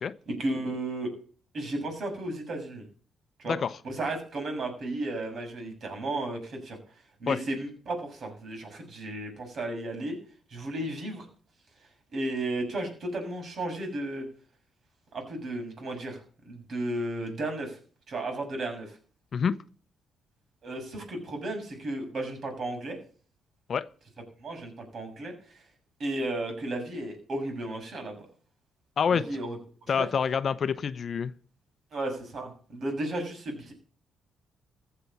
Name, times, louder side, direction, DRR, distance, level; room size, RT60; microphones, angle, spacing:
voice 1, 0.3-1.1 1.5-2.8 3.4-3.6 3.8-6.8 7.2-10.2 10.5-11.2 12.1-14.3 15.1-17.8 18.1-18.9 20.6-23.0 24.4-25.6 26.0-28.2 29.1-29.6 29.9-30.1 31.9-33.7, right 1 dB, 55° right, 6.7 m, -34 dB
voice 2, 29.9-31.3, left 6 dB, 50° left, 0.8 m, -27 dB
15.0 x 6.9 x 7.2 m
cardioid pair, 90°, 0 cm